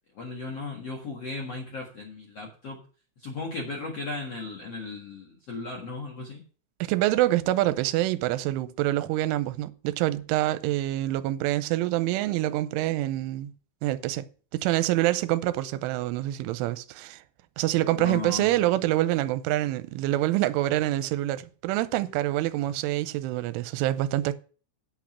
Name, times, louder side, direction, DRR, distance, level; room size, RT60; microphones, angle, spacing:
voice 1, 0.1-2.8 3.2-6.4 18.0-18.6, left 3 dB, 60° left, 1.6 m, -36 dB
voice 2, 6.8-13.5 13.8-14.3 14.5-17.2 17.6-24.3, right 15 dB, 85° right, 3.1 m, -26 dB
8.6 x 8.3 x 5.7 m
omnidirectional pair, 5.7 m